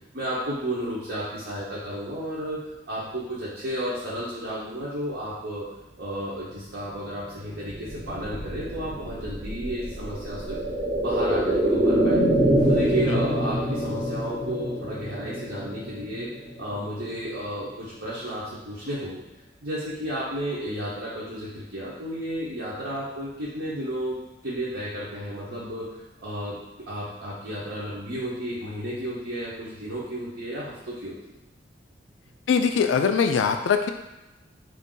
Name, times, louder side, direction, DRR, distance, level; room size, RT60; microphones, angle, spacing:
voice 1, 0.1-5.7 6.0-10.6 10.9-12.3 12.7-16.3 16.6-19.2 19.6-25.9 26.2-26.6 26.9-31.2, right 1 dB, 70° right, -9 dB, 0.8 m, -32 dB
sound 1, 7.5-17.3 17.7-17.8, right 1 dB, 25° right, 0.7 m, -26 dB
voice 2, 32.5-33.9, left 6 dB, 80° left, 6 dB, 0.3 m, -22 dB
2.6 x 2.5 x 3.7 m, 1.0 s
head